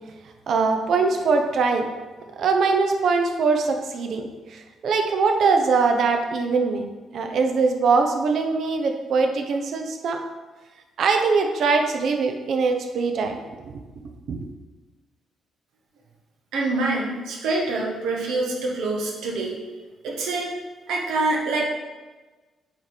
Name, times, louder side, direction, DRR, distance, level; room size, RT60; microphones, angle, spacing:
voice 1, 0.5-1.9 2.4-10.2 11.0-13.4 13.6-13.7 14.3-14.5, right 4 dB, 65° right, 4 dB, 0.9 m, -22 dB
voice 2, 16.5-19.6 20.0-20.5 20.9-21.6, right 2 dB, 85° right, -2 dB, 1.4 m, -25 dB
8.7 x 3.4 x 4.5 m, 1.3 s
cardioid pair, 90°, 0 cm